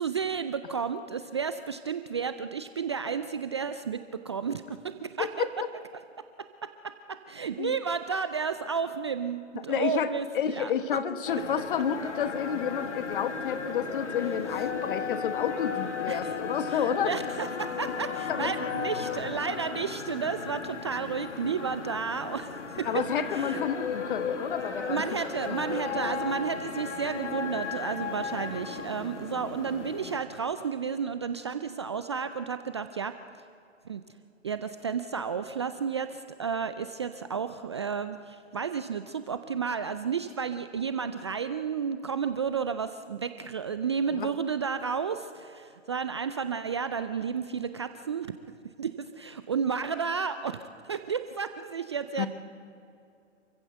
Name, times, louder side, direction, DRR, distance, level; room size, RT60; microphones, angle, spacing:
voice 1, 0.0-5.5 6.4-10.3 10.5-10.7 16.1-16.4 16.7-23.0 23.3-23.6 24.9-33.1 33.9-34.0 34.4-48.3 48.8-50.6 50.8-52.3, right 6 dB, 25° right, 11 dB, 0.4 m, -32 dB
voice 2, 5.2-5.7 7.6-7.7 9.7-17.1 18.3-18.7 22.8-25.0 25.5-25.6 44.1-44.3 52.2-52.3, left 8 dB, 45° left, 11 dB, 1.4 m, -30 dB
sound 1, 11.3-30.2, left 6 dB, 70° left, 2.2 m, -35 dB
27.5 x 15.0 x 7.9 m, 2.6 s
figure-of-eight pair, 130°, 37 cm